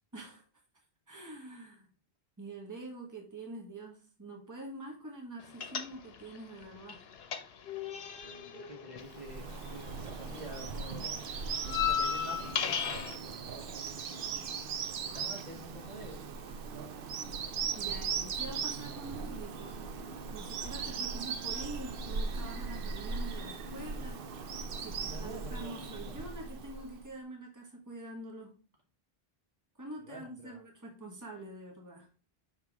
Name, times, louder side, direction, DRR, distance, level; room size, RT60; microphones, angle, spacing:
voice 1, 0.1-0.4 1.1-1.9 2.4-7.0 17.7-19.8 20.3-24.2 24.8-28.5 29.8-32.1, right 2 dB, 20° right, 0 dB, 1.4 m, -45 dB
sound 1, 5.6-6.4 6.6-10.0 10.3-13.2, left 8 dB, 75° left, 0.9 m, -35 dB
voice 2, 8.2-12.5 13.4-13.9 15.1-16.2 24.8-26.1 30.0-30.6, right 1 dB, 45° right, -1 dB, 1.4 m, -48 dB
Bird vocalization bird call bird song, 9.1-27.1, right 5 dB, 65° right, 0.8 m, -38 dB
5.8 x 4.6 x 3.5 m, 0.37 s
omnidirectional pair, 1.0 m